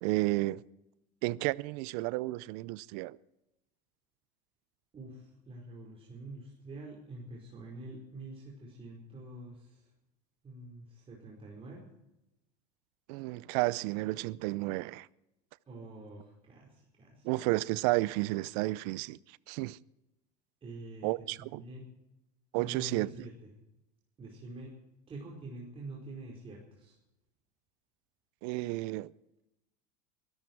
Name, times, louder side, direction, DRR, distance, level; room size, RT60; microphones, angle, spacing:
voice 1, 0.0-0.6 1.2-3.2 13.1-15.1 17.2-19.8 21.0-21.6 22.5-23.3 28.4-29.1, right 20 dB, 65° right, 0.6 m, -32 dB
voice 2, 4.9-9.9 10.4-11.9 15.7-17.3 20.6-21.1 21.4-21.9 22.5-23.5 24.2-24.7 25.1-27.0, right 2 dB, 25° right, 4.8 m, -46 dB
23.0 x 13.5 x 4.7 m
supercardioid pair, 100°, 21 cm